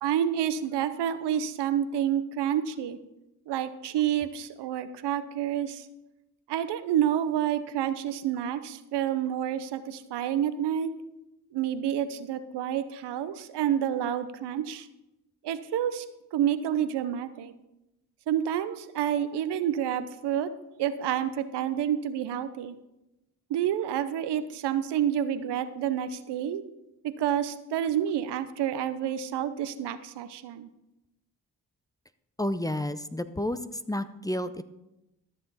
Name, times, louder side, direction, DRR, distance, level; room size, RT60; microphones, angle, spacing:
voice 1, 0.0-3.0 3.5-5.9 6.5-10.9 11.5-14.9 15.4-16.0 16.3-17.5 18.3-20.5 20.8-22.8 23.5-26.6 27.0-30.7, right 10 dB, 80° right, 12 dB, 0.7 m, -29 dB
voice 2, 32.4-33.6 33.9-34.6, left 1 dB, 10° left, 12 dB, 0.6 m, -30 dB
13.5 x 6.8 x 4.1 m, 0.93 s
supercardioid pair, 40°, 41 cm